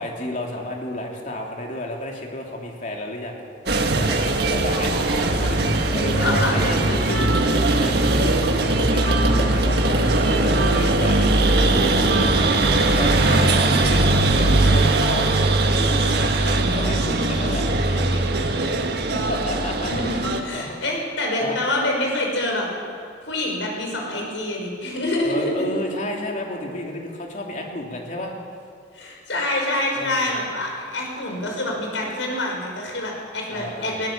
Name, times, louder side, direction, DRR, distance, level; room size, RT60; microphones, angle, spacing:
voice 1, 0.0-3.3 4.1-5.6 5.9-6.9 7.4-15.3 15.7-18.2 18.7-18.9 19.1-19.9 20.5-20.8 21.4-21.6 25.2-28.3 29.9-30.3 33.5-34.0, left 1 dB, 40° left, 0 dB, 3.0 m, -32 dB
sound 1, 3.7-20.4, right 2 dB, 60° right, 1.7 m, -20 dB
voice 2, 4.7-5.3 6.2-7.3 16.5-17.5 19.8-22.7 23.2-25.7 28.9-34.1, left 1 dB, 90° left, 0 dB, 5.5 m, -27 dB
20.5 x 18.0 x 7.5 m, 2.3 s
head